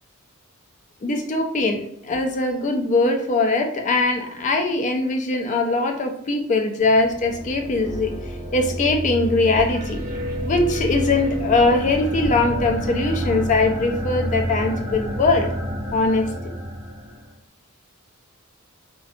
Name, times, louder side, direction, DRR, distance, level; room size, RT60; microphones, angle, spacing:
voice 1, 1.0-10.0 10.4-15.5 15.9-16.5, left 3 dB, 35° left, 4 dB, 0.4 m, -21 dB
sound 1, 6.8-17.3, equal, 15° right, 0.7 m, -29 dB
2.6 x 2.2 x 2.4 m, 0.75 s
head